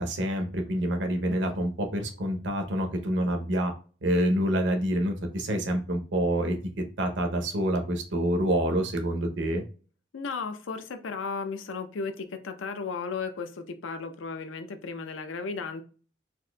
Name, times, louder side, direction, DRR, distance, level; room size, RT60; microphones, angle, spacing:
voice 1, 0.0-3.7 4.0-6.6 7.0-9.6, right 1 dB, 70° right, 0.7 m, -27 dB
voice 2, 10.1-15.8, left 4 dB, 90° left, 0.5 m, -35 dB
4.0 x 2.6 x 2.2 m
head